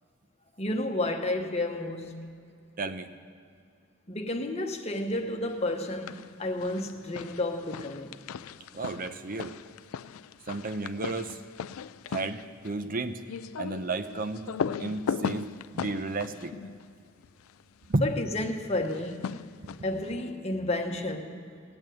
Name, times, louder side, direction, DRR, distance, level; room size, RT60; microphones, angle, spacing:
voice 1, 0.6-2.1 4.1-8.2 18.0-19.2 19.8-21.4, left 2 dB, 30° left, 1.1 m, -31 dB
voice 2, 2.8-3.1 8.7-9.5 10.5-11.4 12.1-13.2 13.6-14.5 14.8-16.5 17.9-18.0 19.6-19.9, right 2 dB, 40° right, 0.7 m, -32 dB
sound 1, 5.8-6.3 6.6-17.6 18.8-20.1, left 6 dB, 85° left, 0.4 m, -38 dB
18.5 x 8.8 x 7.8 m
head